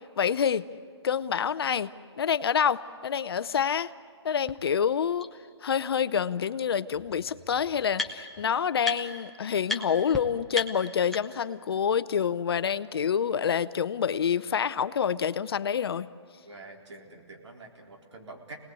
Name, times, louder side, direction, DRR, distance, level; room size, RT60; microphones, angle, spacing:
voice 1, 0.2-0.7 1.0-1.9 2.2-3.9 4.2-5.3 5.6-16.1, left 7 dB, 55° left, 15 dB, 0.7 m, -27 dB
sound 1, 4.5-4.6 5.2-5.3 6.6-6.7 6.9-8.4 8.8-9.3 9.6-9.8 10.1-10.2 10.5-11.5, left 3 dB, ahead, 0.6 m, -34 dB
voice 2, 16.4-18.6, right 2 dB, 75° right, 1 dB, 3.9 m, -46 dB
27.0 x 19.0 x 8.3 m, 2.1 s
hypercardioid pair, 160°, 15 cm